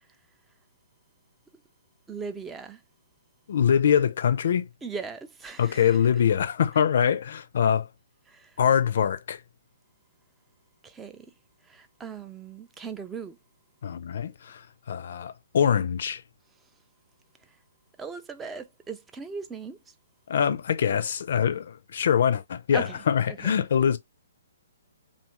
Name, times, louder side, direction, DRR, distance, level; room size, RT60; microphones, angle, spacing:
voice 1, 2.1-2.8 4.8-6.0 8.3-8.6 10.8-11.3 11.6-13.4 17.4-17.6 18.0-19.9 22.7-23.5, right 5 dB, 10° right, 0.4 m, -39 dB
voice 2, 3.5-4.7 5.6-7.9 8.6-9.4 13.8-14.6 14.9-16.2 20.3-24.0, left 8 dB, 60° left, 0.4 m, -24 dB
2.7 x 2.4 x 2.8 m
figure-of-eight pair, 130°, 0 cm